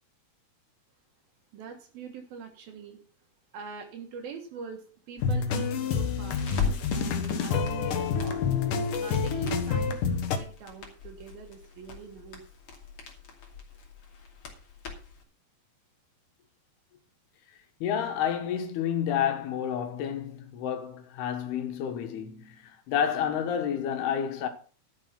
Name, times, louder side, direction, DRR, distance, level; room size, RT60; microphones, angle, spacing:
voice 1, 1.5-3.0 3.5-6.5 6.9-8.4 9.0-12.4, right 6 dB, 70° right, 3.2 m, -43 dB
sound 1, 5.2-10.4, left 5 dB, 65° left, 2.6 m, -28 dB
Crackle, 6.3-15.2, left 6 dB, 40° left, 3.2 m, -39 dB
voice 2, 17.8-24.5, left 8 dB, 85° left, 3.4 m, -30 dB
12.5 x 7.3 x 5.8 m
omnidirectional pair, 4.4 m